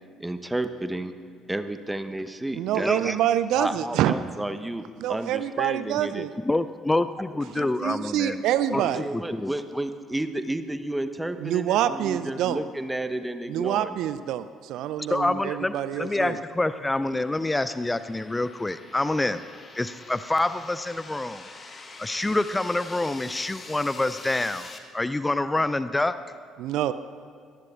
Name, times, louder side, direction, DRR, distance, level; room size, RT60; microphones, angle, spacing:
voice 1, 0.2-1.1 1.5-3.2 3.6-4.8 5.1-6.3 8.7-14.0, right 1 dB, 10° right, 10 dB, 0.9 m, -31 dB
voice 2, 2.5-4.1 5.0-6.3 7.5-9.1 11.4-12.6 13.5-16.4 26.6-26.9, right 11 dB, 60° right, 14 dB, 0.4 m, -26 dB
voice 3, 6.5-8.4 8.7-8.8 9.1-9.5 15.1-19.4 19.7-21.4 22.0-26.1, left 2 dB, 15° left, 13 dB, 0.4 m, -26 dB
sound 1, 15.8-24.8, left 3 dB, 30° left, 1.3 m, -46 dB
23.0 x 18.5 x 2.4 m, 2.1 s
figure-of-eight pair, 50°, 0 cm